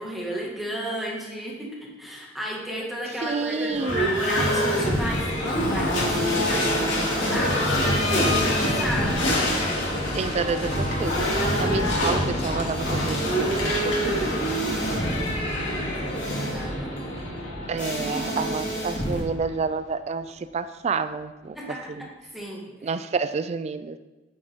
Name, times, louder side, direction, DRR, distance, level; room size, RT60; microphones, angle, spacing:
voice 1, 0.0-8.4 8.8-9.4 10.0-10.3 15.6-17.4 18.1-18.5 21.5-21.9 22.3-22.7, equal, ahead, -3 dB, 1.9 m, -33 dB
sound 1, 3.1-5.3 5.8-12.2 12.7-15.4 16.1-16.7 17.8-19.2, equal, 40° left, 2.3 m, -32 dB
voice 2, 3.2-4.2 10.1-11.3 11.6-14.6 14.9-15.2 17.7-21.6 21.9-22.1 22.8-24.0, right 4 dB, 35° right, 12 dB, 0.3 m, -29 dB
Livestock farm animals working animals / Bell, 3.7-19.6, equal, 80° left, 2.6 m, -26 dB
8.8 x 7.9 x 3.6 m, 1.2 s
head